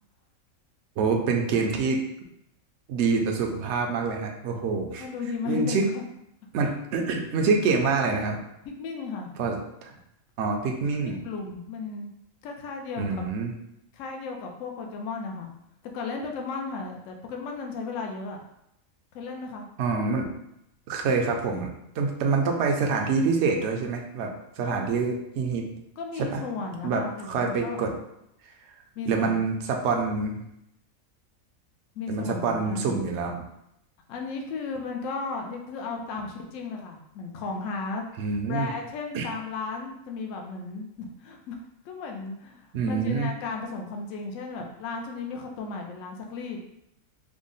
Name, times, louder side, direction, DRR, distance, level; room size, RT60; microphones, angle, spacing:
voice 1, 1.0-2.0 2.9-5.1 5.4-5.9 6.5-8.4 9.4-9.9 10.4-11.2 13.0-13.5 19.8-20.3 20.9-21.7 22.0-25.7 26.2-26.4 26.8-27.0 27.3-27.9 29.0-30.4 32.1-33.4 38.2-38.7 39.1-39.3 42.7-43.3, right 4 dB, 65° right, 2 dB, 0.8 m, -26 dB
voice 2, 5.0-6.0 6.6-6.7 8.6-9.3 11.1-12.1 12.4-13.2 13.9-15.5 15.9-18.4 19.1-19.7 24.6-25.1 26.0-27.8 29.0-29.4 32.0-33.0 34.1-41.6 41.8-46.6, left 4 dB, 70° left, 2 dB, 0.9 m, -35 dB
3.5 x 2.0 x 3.8 m, 0.80 s
omnidirectional pair, 1.5 m